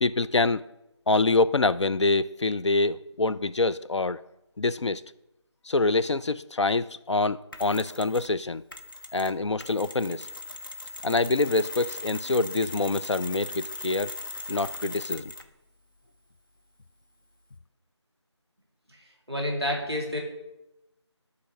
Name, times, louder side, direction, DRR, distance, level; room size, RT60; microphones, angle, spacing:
voice 1, 0.0-0.6 1.1-4.2 4.6-5.0 5.6-8.6 9.1-10.3 11.0-14.1 14.5-15.3, left 3 dB, 70° left, 13 dB, 0.4 m, -25 dB
Mechanisms, 7.5-8.3 8.7-15.6, left 2 dB, 45° left, 0.9 m, -39 dB
voice 2, 19.3-20.2, left 1 dB, 10° left, 0 dB, 1.7 m, -28 dB
12.0 x 4.1 x 6.2 m, 0.91 s
figure-of-eight pair, 175°, 15 cm